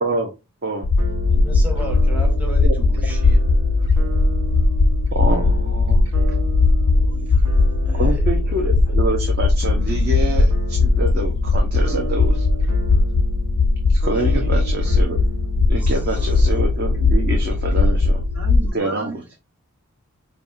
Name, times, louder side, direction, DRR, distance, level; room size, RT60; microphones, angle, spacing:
sound 1, 0.8-18.7, left 3 dB, 65° left, 0.4 m, -18 dB
sound 2, 1.0-18.8, right 4 dB, 90° right, 0.9 m, -37 dB
voice 1, 1.3-3.4 7.8-8.6 14.2-14.5 15.8-16.5, right 1 dB, 5° right, 0.8 m, -35 dB
voice 2, 5.1-6.0 7.9-12.5 13.9-15.2 15.7-18.2 18.7-19.1, right 2 dB, 45° right, 0.8 m, -26 dB
voice 3, 6.8-7.3 18.3-19.4, right 3 dB, 70° right, 1.3 m, -35 dB
5.3 x 2.3 x 2.6 m
head